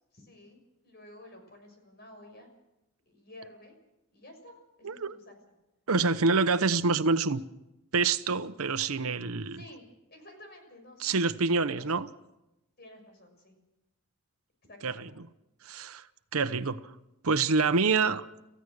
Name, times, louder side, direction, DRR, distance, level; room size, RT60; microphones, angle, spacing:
voice 1, 0.1-2.5 3.1-3.7 4.1-5.4 9.5-11.2 11.5-12.1 12.8-13.5 14.7-15.1, left 1 dB, 45° left, 4 dB, 6.2 m, -52 dB
voice 2, 4.8-5.2 5.9-7.4 7.9-9.6 11.0-12.1 14.8-15.1 15.6-16.1 16.3-16.9 17.2-18.2, right 4 dB, 80° right, 12 dB, 0.9 m, -26 dB
28.0 x 15.5 x 6.5 m, 0.93 s
head